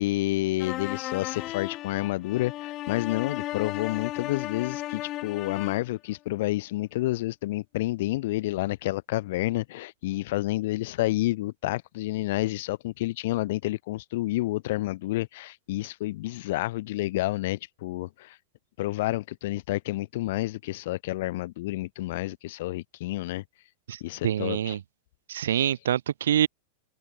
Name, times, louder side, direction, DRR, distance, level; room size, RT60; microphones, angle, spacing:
voice 1, 0.0-18.4 18.8-23.4 24.0-24.8 25.5-25.7, left 17 dB, 55° left, 4.1 m, -29 dB
sound 1, 0.6-5.9, left 16 dB, 35° left, 5.2 m, -35 dB
voice 2, 23.9-24.8 25.3-26.5, right 10 dB, 65° right, 2.7 m, -26 dB
figure-of-eight pair, 90°, 0 cm